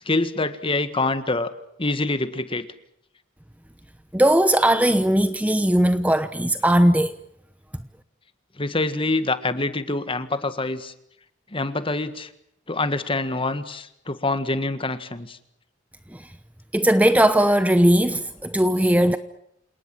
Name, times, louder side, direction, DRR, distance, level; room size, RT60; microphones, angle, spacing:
voice 1, 0.0-1.5 1.8-2.7 8.6-10.9 11.5-12.3 12.7-15.4, left 2 dB, 25° left, 1.7 m, -25 dB
voice 2, 4.1-7.2 16.1-16.2 16.7-19.2, right 1 dB, 10° right, 0.9 m, -18 dB
28.5 x 19.0 x 7.7 m
head